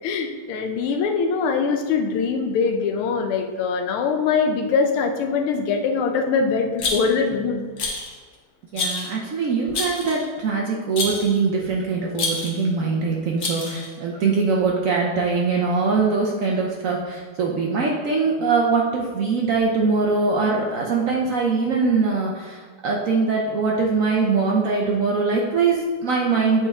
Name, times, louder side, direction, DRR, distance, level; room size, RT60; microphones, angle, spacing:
voice 1, 0.0-8.0, left 5 dB, 90° left, 5 dB, 1.6 m, -23 dB
Rattle, 6.8-7.3 7.8-8.2 8.7-9.1 9.7-10.3 11.0-11.3 12.1-12.6 13.4-13.9, left 3 dB, 55° left, 1.4 m, -27 dB
voice 2, 8.7-26.7, right 4 dB, 85° right, -2 dB, 0.7 m, -22 dB
8.2 x 4.3 x 3.6 m, 1.4 s
omnidirectional pair, 2.3 m